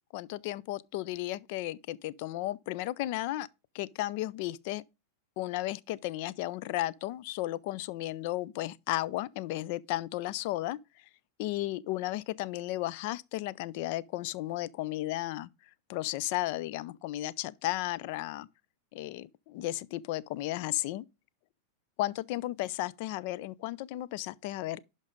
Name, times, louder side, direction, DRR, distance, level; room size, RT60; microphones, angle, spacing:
voice 1, 0.1-3.5 3.7-4.8 5.4-10.8 11.4-15.5 15.9-18.5 18.9-21.1 22.0-24.8, left 16 dB, 45° left, 0.4 m, -34 dB
11.0 x 5.3 x 3.6 m
figure-of-eight pair, 90°, 0 cm